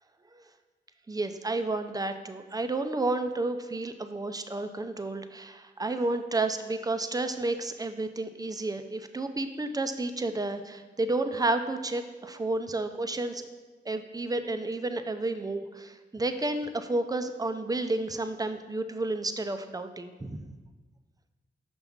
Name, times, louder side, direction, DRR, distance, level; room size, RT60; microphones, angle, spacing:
voice 1, 1.1-13.4 13.9-20.5, right 2 dB, 20° right, 8 dB, 0.5 m, -31 dB
5.9 x 5.6 x 3.6 m, 1.3 s
cardioid pair, 60°, 18 cm